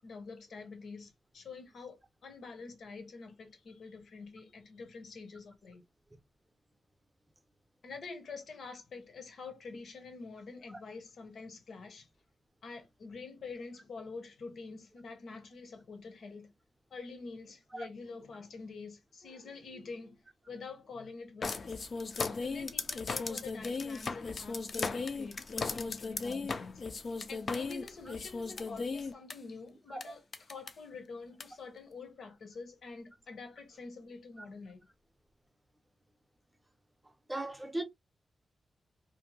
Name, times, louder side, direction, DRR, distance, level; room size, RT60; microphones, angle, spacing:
voice 1, 0.0-5.8 7.8-12.1 12.6-16.5 16.9-20.2 20.5-21.8 22.4-26.8 27.3-34.8, left 4 dB, 75° left, 0.8 m, -47 dB
sound 1, 21.4-29.3 30.0-30.1 30.3-30.7 31.4-31.5, left 4 dB, 45° left, 0.4 m, -36 dB
voice 2, 37.3-37.8, right 1 dB, 10° right, 0.6 m, -36 dB
2.6 x 2.1 x 2.8 m
wide cardioid pair, 130°, 0 cm